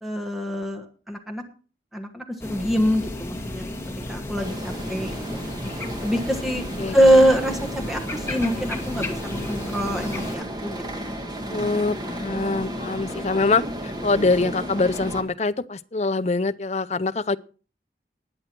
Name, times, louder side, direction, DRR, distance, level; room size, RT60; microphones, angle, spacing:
voice 1, 0.0-1.4 1.9-3.7 4.1-5.5 6.0-6.6 6.9-11.0, equal, ahead, 1.2 m, -24 dB
sound 1, 2.4-10.4, left 1 dB, 15° left, 1.8 m, -33 dB
sound 2, 4.4-15.2, equal, 25° right, 1.7 m, -33 dB
voice 2, 11.5-17.4, left 3 dB, 40° left, 0.5 m, -24 dB
19.5 x 7.8 x 4.5 m
head